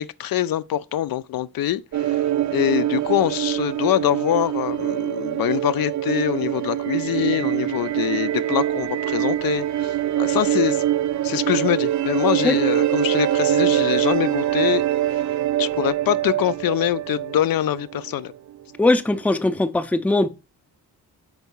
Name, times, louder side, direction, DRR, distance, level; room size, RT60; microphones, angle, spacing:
voice 1, 0.0-2.2 2.5-10.8 11.2-14.8 15.1-15.2 15.6-18.3, left 12 dB, 70° left, 0.5 m, -24 dB
sound 1, 1.9-18.4, right 12 dB, 50° right, 0.4 m, -24 dB
voice 2, 18.8-20.3, left 2 dB, 5° left, 0.4 m, -20 dB
5.4 x 4.6 x 5.4 m
wide cardioid pair, 115°, 37 cm